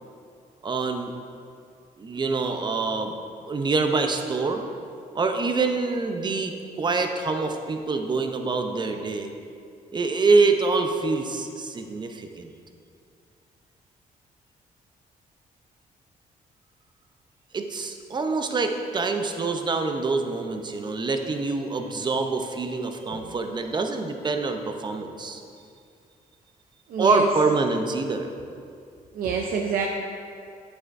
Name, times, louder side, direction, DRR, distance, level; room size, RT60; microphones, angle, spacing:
voice 1, 0.6-1.1 2.0-3.1 3.5-4.6 5.1-9.3 9.9-12.5 17.5-25.4 27.0-28.3 29.2-29.3, right 3 dB, 30° right, 5 dB, 0.6 m, -25 dB
voice 2, 23.0-23.3 26.9-27.3 29.1-29.9, right 6 dB, 75° right, 0 dB, 0.6 m, -27 dB
8.4 x 7.8 x 2.6 m, 2.4 s
cardioid pair, 110°, 15 cm